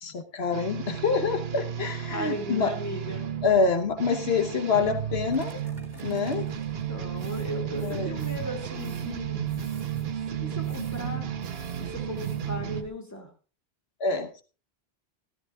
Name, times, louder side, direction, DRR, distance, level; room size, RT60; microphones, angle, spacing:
voice 1, 0.0-2.7 3.4-5.7 6.0-6.5 7.8-8.2 14.0-14.4, left 5 dB, 75° left, 1.3 m, -26 dB
sound 1, 0.5-12.8, right 9 dB, 70° right, 1.1 m, -33 dB
voice 2, 2.1-3.3 6.9-9.5 10.3-11.3 11.8-13.3, left 1 dB, 15° left, 2.5 m, -36 dB
sound 2, 4.8-12.9, right 1 dB, 45° right, 3.9 m, -50 dB
15.5 x 13.0 x 2.3 m
omnidirectional pair, 1.1 m